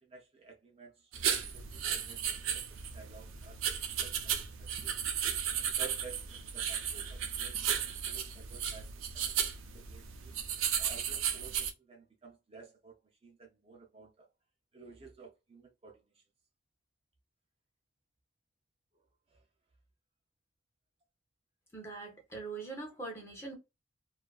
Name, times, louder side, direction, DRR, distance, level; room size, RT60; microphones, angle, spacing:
voice 1, 0.0-2.6 2.9-3.6 4.0-5.0 5.6-6.2 6.5-9.3 9.7-10.4 10.8-13.0 13.2-14.3 14.7-16.0 19.3-19.4, right 4 dB, 30° right, 0.5 m, -53 dB
sound 1, 1.1-11.7, right 8 dB, 80° right, 0.5 m, -35 dB
voice 2, 21.7-23.6, right 3 dB, 10° left, 0.7 m, -42 dB
2.6 x 2.3 x 2.3 m
head